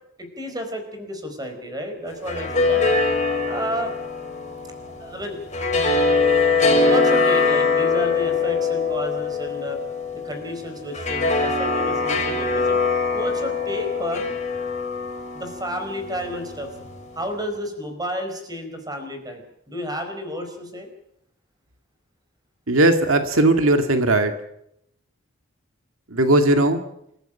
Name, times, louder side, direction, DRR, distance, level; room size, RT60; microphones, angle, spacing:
voice 1, 0.2-2.9 3.4-3.9 5.0-5.4 6.6-9.8 10.1-12.8 13.1-14.3 15.3-16.7 17.1-20.9, equal, 20° right, 6 dB, 4.5 m, -31 dB
sound 1, 2.1-17.3, left 4 dB, 35° left, 5.8 m, -23 dB
voice 2, 22.7-24.3 26.1-26.8, right 2 dB, 85° right, 7 dB, 1.9 m, -18 dB
26.5 x 14.5 x 9.0 m, 0.78 s
head